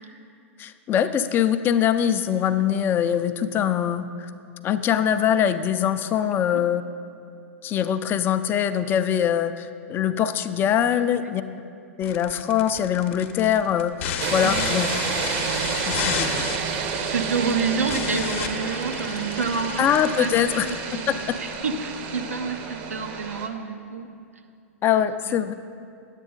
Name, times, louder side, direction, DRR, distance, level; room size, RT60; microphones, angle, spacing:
voice 1, 0.6-4.3 4.6-6.8 7.6-11.4 12.0-14.9 15.9-16.4 19.8-20.7 21.1-21.2 24.8-25.5, left 9 dB, 30° left, 11 dB, 0.4 m, -23 dB
voice 2, 10.9-11.3 14.4-14.7 15.9-16.2 16.7-24.2 25.0-25.4, right 4 dB, 90° right, 6 dB, 0.7 m, -29 dB
sound 1, 12.0-21.6, left 8 dB, 55° left, 0.8 m, -33 dB
sound 2, 14.2-23.5, right 6 dB, 50° right, 0.8 m, -30 dB
9.9 x 8.2 x 3.9 m, 2.4 s
hypercardioid pair, 105°, 8 cm